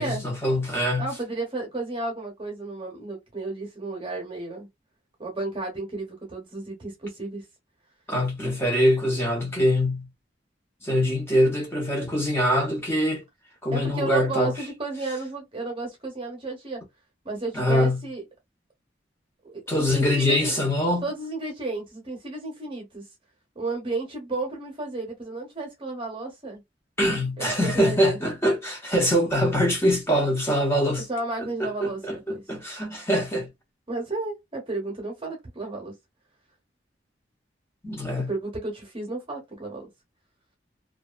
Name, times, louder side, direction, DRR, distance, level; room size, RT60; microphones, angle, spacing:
voice 1, 0.0-1.1 8.1-10.1 10.8-13.2 13.6-14.5 17.5-18.0 19.7-21.1 27.0-31.0 31.4-33.5 37.8-38.3, equal, 15° left, 0.9 m, -23 dB
voice 2, 1.0-4.7 5.2-7.4 13.7-16.8 17.2-18.2 19.4-20.6 21.0-23.0 23.5-26.6 27.4-28.2 31.1-32.4 33.9-35.9 38.3-39.9, right 2 dB, 30° right, 0.9 m, -33 dB
2.6 x 2.3 x 2.4 m
head